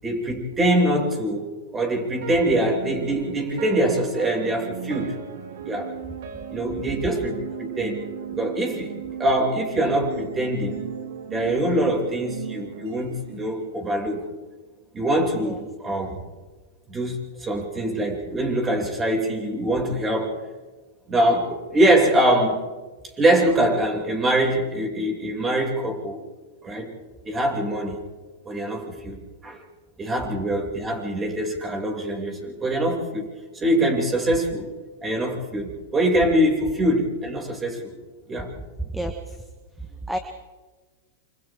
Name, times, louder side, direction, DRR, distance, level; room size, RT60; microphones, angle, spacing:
voice 1, 0.0-5.1 5.6-5.9 6.5-8.0 8.4-8.9 9.2-10.8 11.3-14.2 14.9-16.1 16.9-20.3 21.1-22.6 23.2-26.2 26.6-26.9 27.2-28.0 28.4-29.2 29.4-29.6 30.0-33.3 33.5-34.7 35.0-37.9 38.3-38.5, right 1 dB, 20° right, 0 dB, 6.9 m, -23 dB
sound 1, 1.9-14.2, right 8 dB, 65° right, 2.4 m, -36 dB
voice 2, 38.8-39.4 39.8-40.2, right 1 dB, 5° right, 5 dB, 1.7 m, -31 dB
28.0 x 28.0 x 3.8 m, 1.3 s
hypercardioid pair, 110°, 0 cm